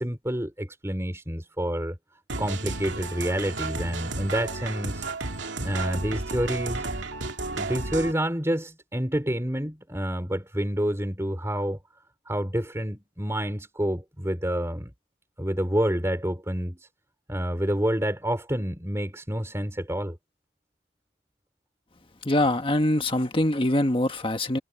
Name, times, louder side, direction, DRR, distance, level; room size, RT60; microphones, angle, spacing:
voice 1, 0.0-2.0 2.4-5.1 5.6-6.8 7.5-11.8 12.3-14.9 15.4-16.9 17.3-20.2, equal, 15° right, 4.5 m, -28 dB
sound 1, 2.3-8.1, right 3 dB, 80° right, 2.4 m, -32 dB
voice 2, 22.2-24.6, left 1 dB, 30° left, 1.5 m, -23 dB
head